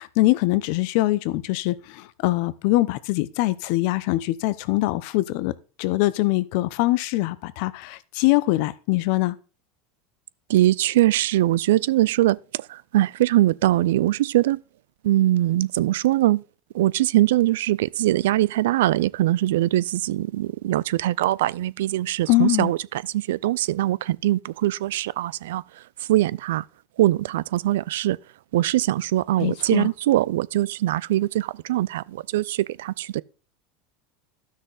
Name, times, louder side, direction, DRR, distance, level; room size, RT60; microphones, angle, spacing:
voice 1, 0.0-9.4 22.3-22.7 29.4-29.9, left 18 dB, 65° left, 0.7 m, -23 dB
voice 2, 10.5-12.4 12.9-14.6 15.0-16.4 16.8-22.8 23.3-25.6 26.1-26.6 27.0-28.2 28.5-32.0 32.3-33.2, right 15 dB, 80° right, 0.3 m, -22 dB
12.5 x 6.3 x 4.0 m
supercardioid pair, 100°, 0 cm